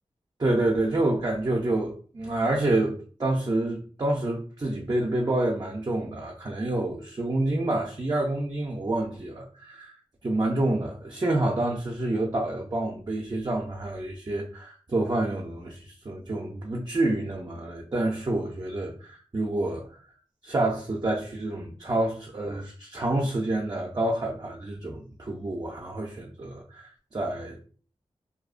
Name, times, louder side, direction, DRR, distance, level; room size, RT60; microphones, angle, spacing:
voice 1, 0.4-9.9 10.2-19.8 20.4-27.6, right 2 dB, 40° right, 0.5 m, -28 dB
2.7 x 2.1 x 2.4 m
wide cardioid pair, 75°, 11 cm